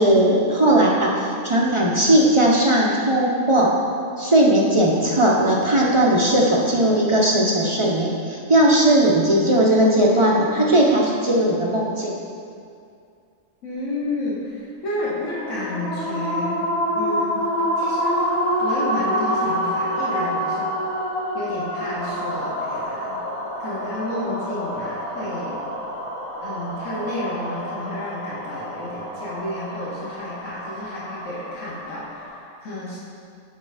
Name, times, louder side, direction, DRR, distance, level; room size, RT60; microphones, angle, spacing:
voice 1, 0.0-3.7 4.2-12.1, right 1 dB, 40° right, -3 dB, 0.4 m, -18 dB
voice 2, 13.6-16.7 16.9-17.4 17.8-18.2 18.6-20.7 21.3-23.2 23.6-25.6 26.4-33.0, left 1 dB, 65° left, -6 dB, 1.4 m, -31 dB
sound 1, 15.0-32.4, equal, 80° left, 1.8 m, -27 dB
5.6 x 5.3 x 4.8 m, 2.4 s
omnidirectional pair, 1.4 m